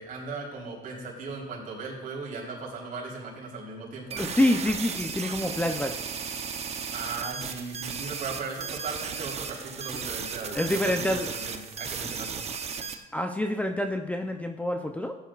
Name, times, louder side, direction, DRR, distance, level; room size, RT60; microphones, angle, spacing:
voice 1, 0.0-4.3 6.9-10.8 11.1-12.4, right 4 dB, 55° right, -3 dB, 4.0 m, -37 dB
voice 2, 4.1-6.0 10.5-11.3 13.1-15.2, left 1 dB, 10° left, 5 dB, 0.6 m, -27 dB
sound 1, 4.1-13.0, right 6 dB, 40° right, 0.9 m, -35 dB
16.0 x 10.0 x 2.5 m, 1.0 s
cardioid pair, 110°, 17 cm